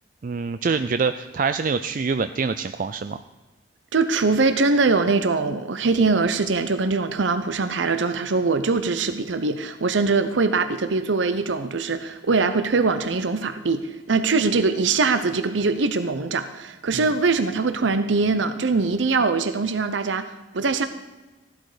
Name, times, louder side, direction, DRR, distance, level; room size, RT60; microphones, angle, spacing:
voice 1, 0.2-3.2 16.9-17.0, right 5 dB, 45° right, 11 dB, 0.4 m, -25 dB
voice 2, 3.9-20.9, right 4 dB, 85° right, 10 dB, 0.7 m, -22 dB
15.5 x 12.0 x 5.0 m, 1.1 s
head